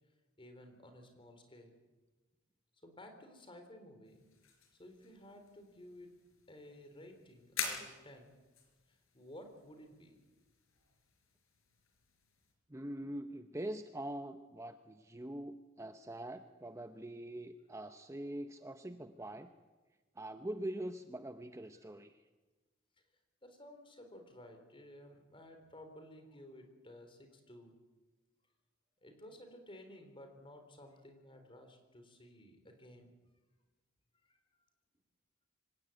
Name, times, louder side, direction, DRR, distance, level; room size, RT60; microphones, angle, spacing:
voice 1, 0.4-1.7 2.8-4.3 4.8-6.1 6.5-8.3 8.9-10.2 23.4-27.7 29.0-33.1 34.1-34.4, left 1 dB, 25° left, 5 dB, 3.8 m, -55 dB
sound 1, 4.0-12.5, left 6 dB, 75° left, 4.6 m, -48 dB
voice 2, 12.7-19.5 20.2-22.2, right 1 dB, 15° right, 8 dB, 0.7 m, -43 dB
25.0 x 17.0 x 9.2 m, 1.2 s
head